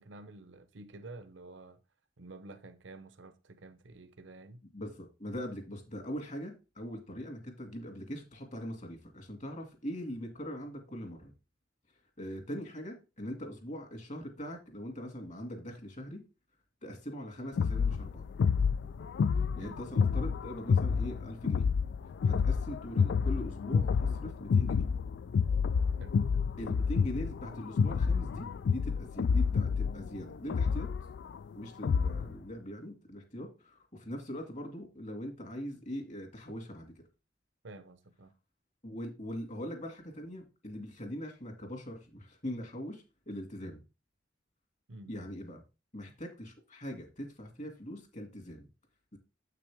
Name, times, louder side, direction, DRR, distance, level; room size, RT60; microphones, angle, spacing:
voice 1, 0.0-1.8 2.2-4.6 19.6-19.8 26.0-26.1 37.6-38.3 44.9-45.1, right 2 dB, 80° right, 0.8 m, -50 dB
voice 2, 4.7-11.3 12.2-16.2 16.8-18.3 19.6-21.7 22.2-24.9 26.6-30.9 31.5-36.9 38.8-43.8 45.1-45.6 45.9-48.7 49.1-49.2, equal, 40° left, 2.2 m, -41 dB
sound 1, 17.6-32.3, left 6 dB, 65° left, 0.3 m, -29 dB
7.9 x 6.0 x 3.5 m
head